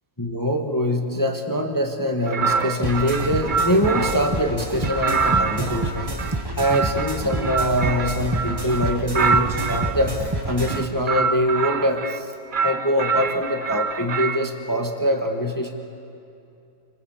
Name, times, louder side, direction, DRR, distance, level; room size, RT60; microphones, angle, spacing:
voice 1, 0.2-6.1 6.6-10.2 10.4-12.3 12.6-15.7, equal, 10° left, 3 dB, 1.5 m, -23 dB
sound 1, 2.3-4.4 4.8-9.9 10.6-12.2 12.5-14.5, right 5 dB, 50° right, 0.5 m, -26 dB
sound 2, 2.8-10.8, right 2 dB, 15° right, 1.1 m, -28 dB
28.5 x 23.0 x 7.4 m, 2.6 s
omnidirectional pair, 1.9 m